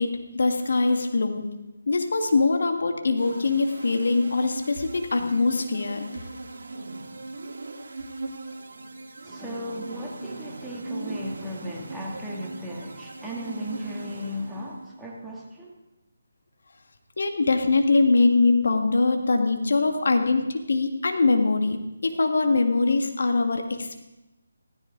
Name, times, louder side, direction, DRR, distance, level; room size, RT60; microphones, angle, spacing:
voice 1, 0.0-1.5 1.9-6.0 17.2-21.8 22.0-24.0, left 3 dB, 65° left, 5 dB, 1.9 m, -22 dB
sound 1, 3.2-14.9, right 2 dB, 60° right, 2.4 m, -39 dB
voice 2, 9.2-15.8, equal, 5° right, -5 dB, 2.2 m, -36 dB
17.0 x 15.5 x 3.9 m, 1.0 s
figure-of-eight pair, 155°, 0 cm